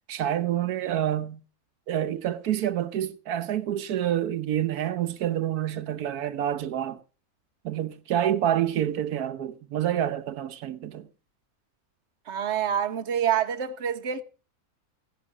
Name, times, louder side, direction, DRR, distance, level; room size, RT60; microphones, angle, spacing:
voice 1, 0.1-1.4 1.9-7.0 7.6-11.1, right 11 dB, 85° right, 1.4 m, -28 dB
voice 2, 12.3-14.2, right 9 dB, 50° right, 1.3 m, -27 dB
17.0 x 11.0 x 4.8 m
omnidirectional pair, 1.6 m